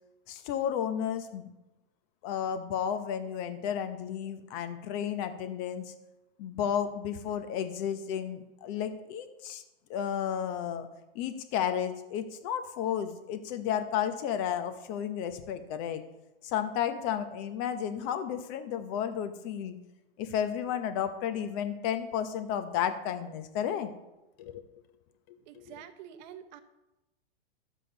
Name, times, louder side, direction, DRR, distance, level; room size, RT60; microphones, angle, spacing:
voice 1, 0.3-1.5 2.2-5.9 6.4-9.6 9.9-10.9 11.1-16.0 16.4-19.8 20.2-23.9 24.4-24.6 25.3-25.8, left 9 dB, 40° left, 9 dB, 1.0 m, -32 dB
voice 2, 25.4-26.6, right 10 dB, 45° right, 9 dB, 1.0 m, -47 dB
11.0 x 7.5 x 4.0 m, 0.97 s
hypercardioid pair, 125°, 31 cm